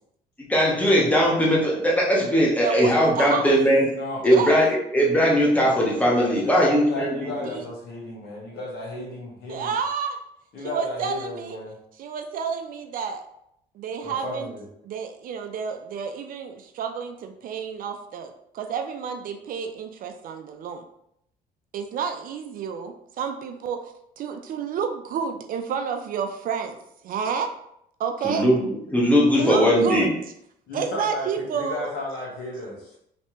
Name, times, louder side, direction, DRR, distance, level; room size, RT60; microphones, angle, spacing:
voice 1, 0.4-3.9 4.2-4.7 4.9-7.3 28.2-28.6 28.9-30.1, equal, 10° left, -4 dB, 1.1 m, -19 dB
voice 2, 2.6-3.6 4.2-4.6 7.5-7.6 9.5-10.2 10.6-11.6 12.0-13.2 13.7-14.5 14.8-20.8 21.7-27.5 28.0-28.5 29.4-30.1 30.7-31.9, right 6 dB, 55° right, 6 dB, 0.5 m, -30 dB
voice 3, 3.9-4.3 6.1-9.7 10.5-11.8 14.0-14.6 30.7-32.9, left 1 dB, 70° left, -3 dB, 1.5 m, -33 dB
3.2 x 3.1 x 3.0 m, 0.75 s
cardioid pair, 110°, 17 cm